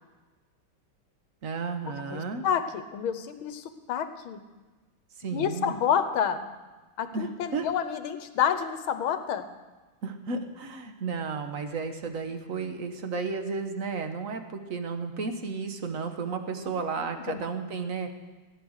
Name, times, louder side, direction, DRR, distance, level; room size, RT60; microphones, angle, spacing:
voice 1, 1.4-2.4 5.2-5.7 7.1-7.7 10.0-18.1, right 4 dB, 45° right, 7 dB, 1.2 m, -33 dB
voice 2, 2.1-4.4 5.3-6.4 7.0-9.5 17.3-17.5, left 8 dB, 75° left, 10 dB, 1.7 m, -29 dB
16.5 x 9.9 x 6.5 m, 1.2 s
omnidirectional pair, 2.3 m